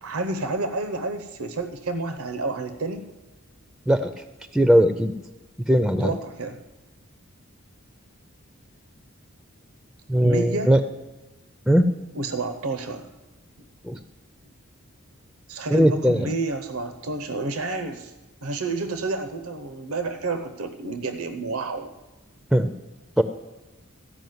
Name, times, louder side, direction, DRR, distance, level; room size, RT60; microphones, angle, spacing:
voice 1, 0.0-3.0 6.0-6.6 10.2-10.7 12.1-13.1 13.6-13.7 15.5-18.1 18.4-21.9, right 3 dB, 85° right, 8 dB, 0.8 m, -30 dB
voice 2, 4.5-5.1 5.7-6.1 10.1-10.8 11.7-11.9 13.8-14.0 15.7-16.3 22.5-22.7 23.2-23.3, equal, ahead, 9 dB, 0.4 m, -19 dB
14.5 x 5.2 x 9.4 m, 1.1 s
head